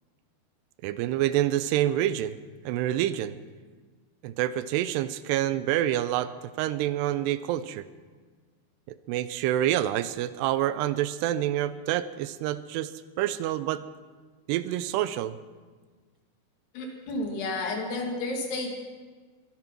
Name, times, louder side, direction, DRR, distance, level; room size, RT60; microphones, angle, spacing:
voice 1, 0.8-2.4 2.7-3.4 4.2-6.3 6.6-7.9 8.9-12.9 13.2-13.8 14.5-15.4, right 12 dB, 85° right, 14 dB, 2.7 m, -27 dB
voice 2, 16.7-18.8, left 2 dB, 75° left, 1 dB, 4.4 m, -31 dB
24.0 x 9.1 x 6.0 m, 1.4 s
omnidirectional pair, 4.7 m